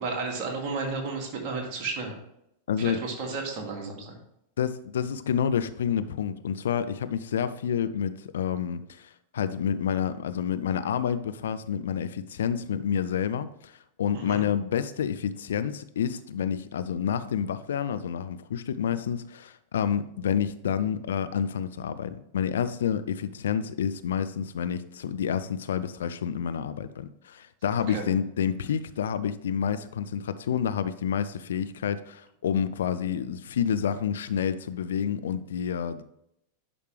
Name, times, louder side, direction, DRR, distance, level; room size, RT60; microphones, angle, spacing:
voice 1, 0.0-2.2 2.8-4.2 14.1-14.4 27.9-28.0, right 4 dB, 40° right, 0 dB, 2.3 m, -33 dB
voice 2, 2.7-3.0 4.6-36.0, left 8 dB, 65° left, 12 dB, 0.5 m, -29 dB
11.0 x 5.1 x 3.3 m, 0.79 s
figure-of-eight pair, 90°, 0 cm